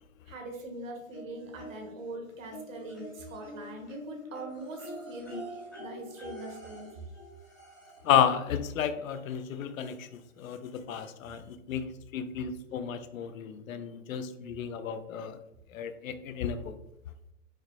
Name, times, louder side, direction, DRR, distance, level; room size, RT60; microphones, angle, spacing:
voice 1, 0.3-6.9, right 2 dB, 70° right, 2 dB, 1.1 m, -42 dB
sound 1, 1.1-2.1 2.5-8.2 9.4-9.5 9.9-10.0, equal, 15° left, 0.4 m, -45 dB
voice 2, 8.0-15.4 15.7-16.7, left 8 dB, 75° left, 10 dB, 0.5 m, -32 dB
4.8 x 2.0 x 2.9 m, 0.85 s
hypercardioid pair, 170°, 41 cm